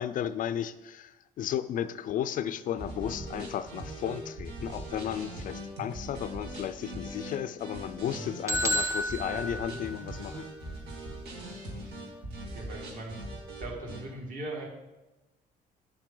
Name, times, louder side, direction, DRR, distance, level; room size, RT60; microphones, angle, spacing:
voice 1, 0.0-10.5, left 10 dB, 55° left, 14 dB, 0.4 m, -34 dB
sound 1, 2.8-14.0, right 1 dB, 80° right, 2.1 m, -41 dB
sound 2, 8.5-10.4, equal, 15° right, 0.5 m, -31 dB
voice 2, 12.5-13.2 13.6-14.7, right 2 dB, 50° right, -1 dB, 2.2 m, -39 dB
8.4 x 7.4 x 3.8 m, 1.1 s
cardioid pair, 110°, 17 cm